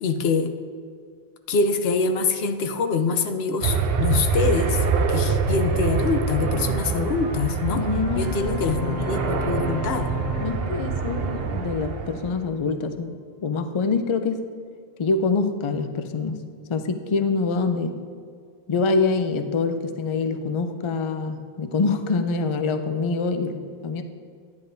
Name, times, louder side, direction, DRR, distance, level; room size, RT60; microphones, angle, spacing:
voice 1, 0.0-0.5 1.5-7.8 8.1-10.1, left 4 dB, 85° left, 7 dB, 0.9 m, -25 dB
sound 1, 3.6-12.4, right 5 dB, 70° right, 0.8 m, -25 dB
sound 2, 6.0-12.1, left 2 dB, 25° right, 1.4 m, -36 dB
voice 2, 7.7-8.6 10.4-14.5 15.0-16.4 16.7-18.0 18.7-24.0, left 4 dB, 40° left, 8 dB, 0.4 m, -25 dB
10.5 x 9.6 x 2.6 m, 2.1 s
omnidirectional pair, 1.0 m